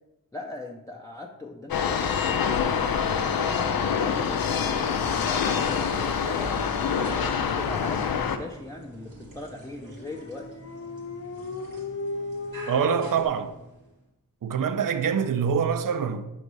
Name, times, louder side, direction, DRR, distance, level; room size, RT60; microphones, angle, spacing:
voice 1, 0.3-6.5 7.2-10.5, left 2 dB, 10° left, 0.6 m, -40 dB
sound 1, 1.7-8.4, left 7 dB, 80° left, 0.5 m, -26 dB
sound 2, 6.8-14.0, right 1 dB, 85° right, 1.5 m, -46 dB
Dog, 9.8-13.3, left 3 dB, 45° left, 0.7 m, -35 dB
voice 2, 12.7-13.5 14.4-16.3, right 7 dB, 65° right, 0.5 m, -25 dB
5.2 x 4.0 x 4.7 m
cardioid pair, 55°, 35 cm